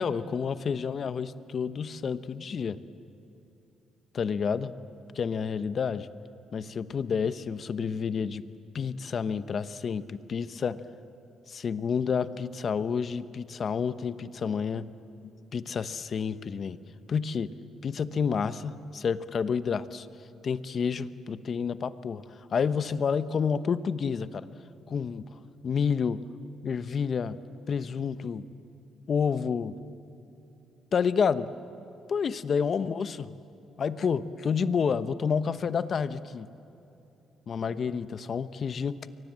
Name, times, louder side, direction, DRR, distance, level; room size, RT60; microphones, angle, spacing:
voice 1, 0.0-2.8 4.1-4.7 5.1-6.1 6.5-8.4 8.7-10.8 11.5-14.9 15.5-16.8 17.1-17.5 17.8-20.1 20.4-24.5 24.9-26.2 26.6-27.4 27.7-28.4 29.1-29.7 30.9-31.5 32.1-33.3 33.8-36.5 37.5-39.0, left 6 dB, 50° left, 13 dB, 0.9 m, -29 dB
29.5 x 23.5 x 7.6 m, 2.9 s
cardioid pair, 90°, 0 cm